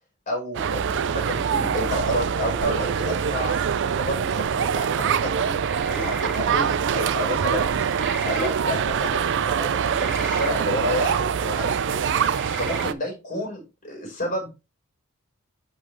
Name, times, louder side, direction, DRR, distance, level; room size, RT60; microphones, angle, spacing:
voice 1, 0.3-5.6 5.9-7.7 8.2-12.1 12.6-14.5, left 1 dB, 35° left, 0 dB, 4.4 m, -30 dB
sound 1, 0.5-12.9, right 7 dB, 55° right, 0.4 m, -24 dB
sound 2, 5.7-6.4 7.9-8.5 10.0-10.5 12.3-12.8, equal, ahead, 1.0 m, -36 dB
11.0 x 3.9 x 3.2 m, 0.26 s
head